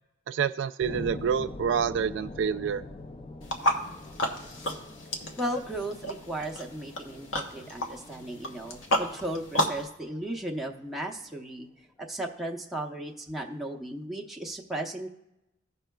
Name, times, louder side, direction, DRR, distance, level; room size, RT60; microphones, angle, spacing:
voice 1, 0.3-2.8, right 7 dB, 65° right, 9 dB, 0.3 m, -28 dB
sound 1, 0.8-11.6, left 2 dB, 25° left, 0.3 m, -45 dB
sound 2, 3.4-9.9, equal, 80° left, 1.0 m, -32 dB
voice 2, 5.4-11.7 12.0-15.1, right 1 dB, ahead, 0 dB, 0.7 m, -35 dB
16.5 x 5.5 x 2.3 m, 0.88 s
head